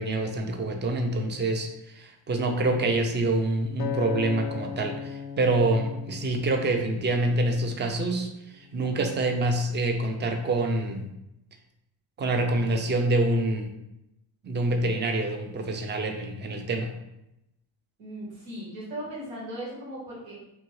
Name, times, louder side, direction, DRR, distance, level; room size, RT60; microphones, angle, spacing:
voice 1, 0.0-11.1 12.2-13.7 14.4-16.9, right 2 dB, 25° right, 4 dB, 0.4 m, -26 dB
Acoustic guitar, 3.8-8.1 8.7-9.0, left 8 dB, 50° left, 0.4 m, -37 dB
voice 2, 18.0-20.4, right 1 dB, 85° right, -5 dB, 1.5 m, -37 dB
2.8 x 2.6 x 3.0 m, 0.87 s
supercardioid pair, 75°, 49 cm